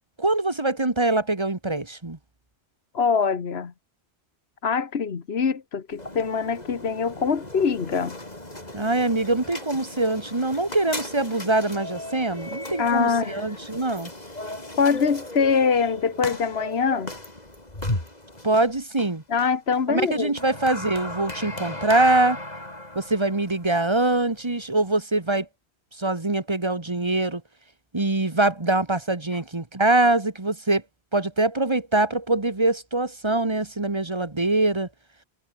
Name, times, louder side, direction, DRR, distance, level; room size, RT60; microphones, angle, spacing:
voice 1, 0.2-2.2 8.7-14.1 18.4-19.2 19.9-22.4 23.0-25.5 26.0-27.4 27.9-30.8 31.1-34.9, right 2 dB, 25° right, 1.7 m, -23 dB
voice 2, 2.9-3.7 4.6-8.2 12.8-13.4 14.8-17.1 19.3-20.3, left 5 dB, 70° left, 1.6 m, -23 dB
sound 1, 5.9-25.0, left 1 dB, 40° left, 4.7 m, -36 dB
omnidirectional pair, 1.1 m